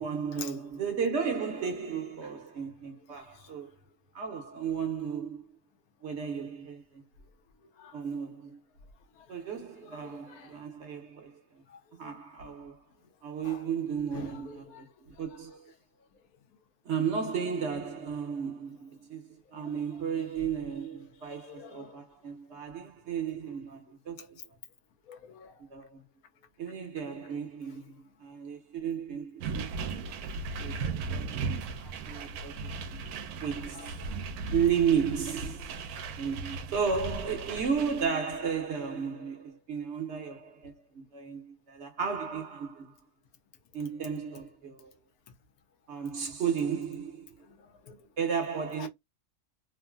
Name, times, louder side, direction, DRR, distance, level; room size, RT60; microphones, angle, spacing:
voice 1, 0.0-3.7 4.1-5.4 6.0-7.0 7.9-8.6 9.3-11.4 11.9-12.8 13.2-15.7 16.8-24.5 25.7-26.0 26.6-29.5 30.6-31.7 32.0-32.6 32.9-33.0 33.4-33.9 34.5-35.8 36.2-42.9 43.7-44.9 45.9-47.4 48.2-48.9, right 7 dB, 55° right, 0.9 m, -34 dB
voice 2, 9.8-10.5 11.7-12.1 13.4-13.6 14.1-14.8 19.5-19.6 21.4-22.0 25.1-25.7 31.8-32.0 33.7-34.2 47.5-48.1 48.8-48.9, left 7 dB, 80° left, 1.1 m, -48 dB
sound 1, 29.4-38.1, right 4 dB, 85° right, 1.1 m, -37 dB
3.1 x 2.5 x 2.2 m
omnidirectional pair, 1.6 m